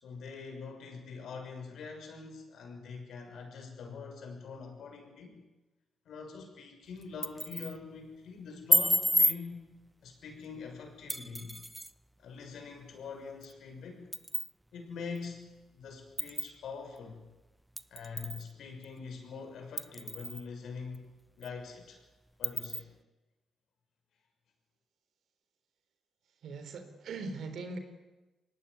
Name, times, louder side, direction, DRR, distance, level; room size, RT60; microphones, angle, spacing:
voice 1, 0.0-5.4 6.0-9.7 10.0-11.6 12.2-14.1 14.7-17.2 17.9-21.1 21.4-22.0 22.4-22.9, left 5 dB, 75° left, 4 dB, 6.4 m, -44 dB
sound 1, 7.0-7.8 8.7-9.4 11.1-11.9 13.4-13.5 14.1-14.5 15.2-15.3 16.2-16.5 17.8-18.4 18.8-18.9 19.8-20.4 20.9-21.0 21.4-21.5 22.4-22.8, right 1 dB, 10° right, 0.9 m, -30 dB
voice 2, 26.4-27.8, right 3 dB, 75° right, 8 dB, 4.0 m, -40 dB
23.5 x 18.5 x 9.8 m, 1.1 s
cardioid pair, 75°, 0 cm